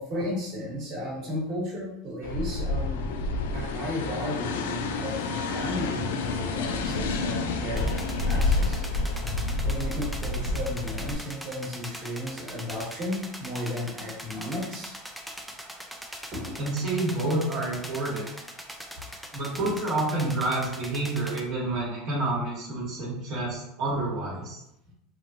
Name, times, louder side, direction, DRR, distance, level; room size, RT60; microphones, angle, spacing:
voice 1, 0.0-3.1 3.5-8.8 9.6-14.9 16.3-16.5 18.9-19.0, left 1 dB, 45° right, -3 dB, 1.3 m, -34 dB
sound 1, 2.2-11.1, left 3 dB, 85° left, 0.3 m, -29 dB
sound 2, 7.8-21.4, equal, ahead, 0.4 m, -41 dB
voice 2, 16.6-18.2 19.3-24.6, right 2 dB, 60° right, -8 dB, 1.1 m, -28 dB
3.1 x 2.2 x 2.6 m, 0.79 s
supercardioid pair, 110°, 0 cm